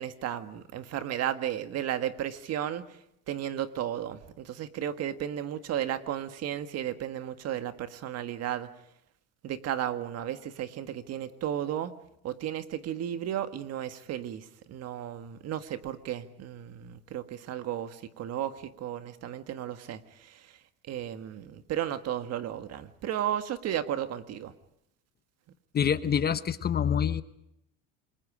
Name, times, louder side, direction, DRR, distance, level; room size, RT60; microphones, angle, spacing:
voice 1, 0.0-2.8 3.3-8.7 9.4-11.9 12.2-20.3 20.9-24.5, right 10 dB, 50° right, 10 dB, 1.7 m, -34 dB
voice 2, 25.7-27.2, left 8 dB, 30° left, 13 dB, 0.9 m, -26 dB
28.0 x 22.0 x 5.0 m, 0.79 s
supercardioid pair, 110°, 34 cm